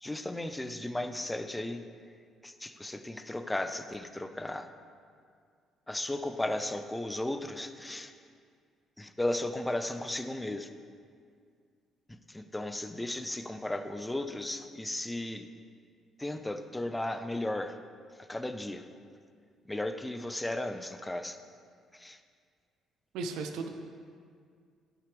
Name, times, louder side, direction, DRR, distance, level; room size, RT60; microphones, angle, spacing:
voice 1, 0.0-1.8 2.4-4.7 5.9-8.1 9.0-10.7 12.1-15.5 16.2-17.8 18.2-18.9 19.7-21.4 21.9-22.2, left 1 dB, 10° left, 9 dB, 0.4 m, -35 dB
voice 2, 23.1-23.7, right 4 dB, 90° right, 6 dB, 0.6 m, -35 dB
11.0 x 5.9 x 3.4 m, 2.2 s
cardioid pair, 115°, 0 cm